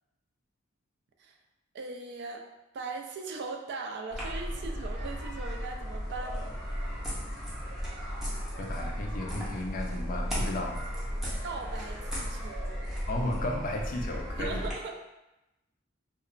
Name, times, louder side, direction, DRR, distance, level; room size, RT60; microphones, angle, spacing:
voice 1, 1.7-2.5 2.7-6.5 11.4-12.7 14.3-15.0, right 4 dB, 55° right, 3 dB, 0.3 m, -39 dB
sound 1, 4.1-14.7, equal, ahead, 0.6 m, -35 dB
voice 2, 8.6-10.8 13.1-14.6, left 1 dB, 40° left, 2 dB, 0.3 m, -34 dB
2.8 x 2.0 x 2.4 m, 0.94 s
head